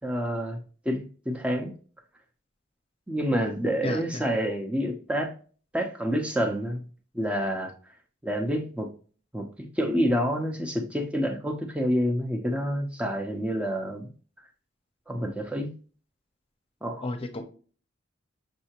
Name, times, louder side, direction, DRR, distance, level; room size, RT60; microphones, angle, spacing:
voice 1, 0.0-0.6 0.8-1.7 3.1-5.3 5.7-6.9 7.1-7.7 8.2-8.9 9.3-14.1 15.1-15.7 16.8-17.1, equal, 5° right, 0.6 m, -28 dB
voice 2, 3.8-4.2 17.0-17.4, left 2 dB, 30° left, 0.8 m, -32 dB
6.4 x 2.7 x 2.9 m
head